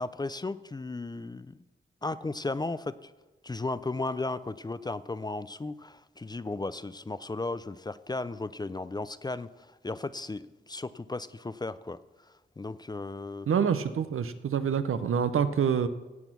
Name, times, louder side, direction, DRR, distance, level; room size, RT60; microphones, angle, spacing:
voice 1, 0.0-1.6 2.0-3.1 3.4-12.0 12.6-13.5, left 2 dB, 20° left, 15 dB, 0.4 m, -35 dB
voice 2, 13.5-15.9, right 7 dB, 80° right, 12 dB, 0.7 m, -26 dB
17.0 x 6.2 x 6.0 m, 1.1 s
wide cardioid pair, 105°, 21 cm